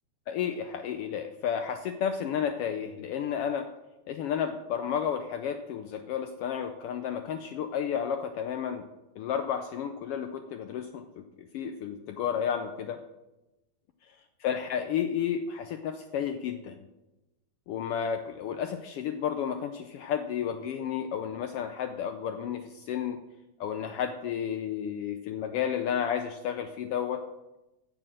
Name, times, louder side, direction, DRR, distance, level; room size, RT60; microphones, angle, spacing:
voice 1, 0.3-3.7 4.1-8.8 9.2-13.0 14.4-16.8 17.7-23.2 23.6-27.2, left 8 dB, 90° left, 7 dB, 1.3 m, -32 dB
9.9 x 7.0 x 7.6 m, 1.0 s
omnidirectional pair, 3.4 m